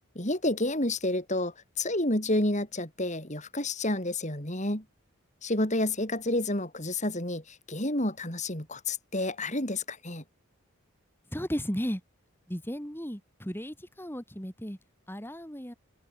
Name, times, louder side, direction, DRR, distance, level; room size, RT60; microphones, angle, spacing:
voice 1, 0.1-4.8 5.4-10.2, left 1 dB, 35° left, 6.6 m, -30 dB
voice 2, 11.3-12.0 12.5-14.8 15.1-15.7, equal, 10° left, 4.4 m, -35 dB
head